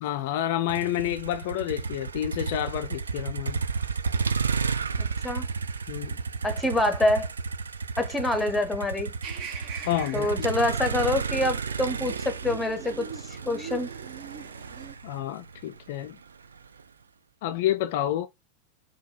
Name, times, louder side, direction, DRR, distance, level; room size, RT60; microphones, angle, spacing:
voice 1, 0.0-3.6 5.9-6.2 9.9-10.5 15.0-16.2 17.4-18.3, left 12 dB, 50° left, 0.3 m, -29 dB
Motor vehicle (road), 0.7-16.8, right 5 dB, 70° right, 0.3 m, -32 dB
voice 2, 6.4-7.3 8.0-9.1 10.1-13.9, left 1 dB, 5° left, 0.8 m, -26 dB
sound 1, 9.2-15.0, right 7 dB, 45° right, 0.7 m, -42 dB
4.6 x 2.3 x 3.7 m
figure-of-eight pair, 90°, 0 cm